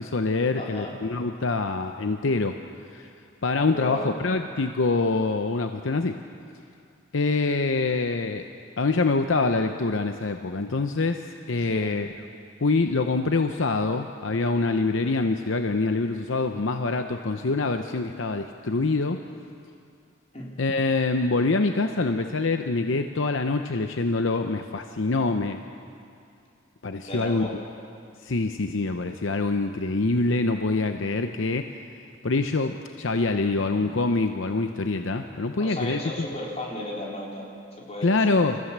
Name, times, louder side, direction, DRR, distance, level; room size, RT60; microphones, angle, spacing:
voice 1, 0.0-2.6 2.9-3.1 3.4-6.2 7.1-8.5 8.8-12.1 12.6-19.2 20.6-25.6 26.8-27.5 28.2-31.7 32.2-36.3 38.0-38.6, left 3 dB, 70° left, 6 dB, 0.8 m, -25 dB
voice 2, 0.5-1.0 3.6-4.1 11.6-12.0 20.3-20.6 27.0-27.6 35.6-38.4, left 1 dB, 30° left, -3 dB, 3.7 m, -35 dB
29.0 x 14.5 x 7.4 m, 2.4 s
head